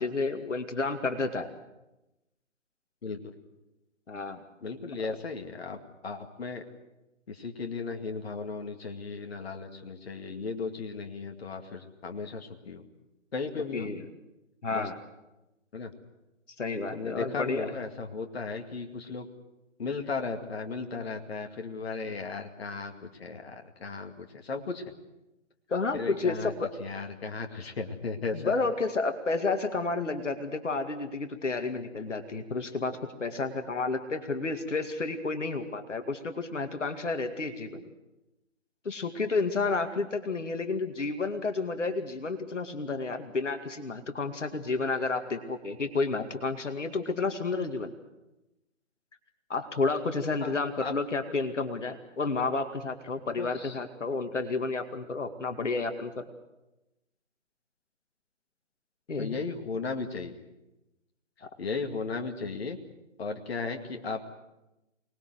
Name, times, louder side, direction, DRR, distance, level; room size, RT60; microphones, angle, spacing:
voice 1, 0.0-1.5 4.1-4.4 13.7-14.0 14.6-15.0 16.6-17.7 25.7-26.7 28.3-37.9 38.8-47.9 49.5-56.2 59.1-59.4, left 3 dB, 65° left, 7 dB, 2.2 m, -31 dB
voice 2, 4.6-6.6 7.3-12.8 13.3-13.9 14.7-14.9 15.7-15.9 16.9-19.3 19.8-24.8 25.9-26.5 26.8-28.5 50.4-50.5 50.8-50.9 53.4-53.7 59.2-60.3 61.6-62.8 63.2-64.2, left 4 dB, 50° left, 4 dB, 2.3 m, -35 dB
25.0 x 20.0 x 7.9 m, 0.97 s
figure-of-eight pair, 150°, 38 cm